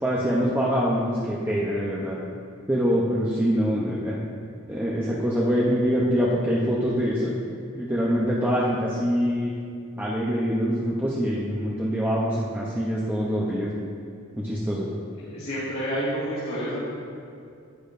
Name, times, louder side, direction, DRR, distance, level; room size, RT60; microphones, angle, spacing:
voice 1, 0.0-2.2 2.7-4.2 4.7-7.3 7.7-9.5 10.0-13.7 14.4-14.9, equal, 10° right, -6 dB, 0.7 m, -24 dB
voice 2, 15.3-16.8, equal, 55° left, -12 dB, 2.1 m, -29 dB
10.0 x 8.5 x 2.6 m, 2.4 s
head